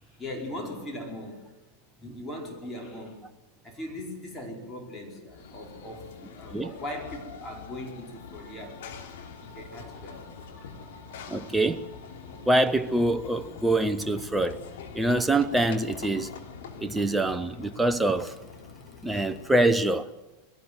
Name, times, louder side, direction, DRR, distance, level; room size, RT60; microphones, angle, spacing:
voice 1, 0.1-1.4 2.0-3.2 3.6-8.8 9.4-10.2 10.5-10.7, left 1 dB, 15° left, 4.9 m, -39 dB
Run / Train, 5.3-19.7, left 6 dB, 55° left, 3.1 m, -44 dB
voice 2, 11.3-11.8 12.5-14.6 14.9-16.3 16.8-18.3 19.0-20.1, right 1 dB, 5° right, 0.9 m, -25 dB
22.5 x 18.0 x 7.8 m
figure-of-eight pair, 90°, 0 cm